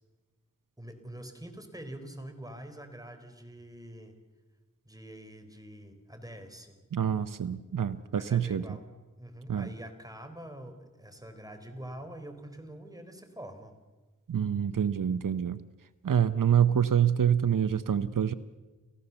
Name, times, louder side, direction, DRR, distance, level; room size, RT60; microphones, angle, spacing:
voice 1, 0.8-4.1 4.9-6.7 8.1-8.8 9.2-13.7, right 1 dB, 10° right, 6 dB, 4.0 m, -45 dB
voice 2, 6.9-8.6 9.5-9.7 14.3-15.6 16.0-18.3, right 8 dB, 85° right, 14 dB, 0.7 m, -26 dB
29.0 x 15.5 x 7.0 m, 1.3 s
wide cardioid pair, 45°, 32 cm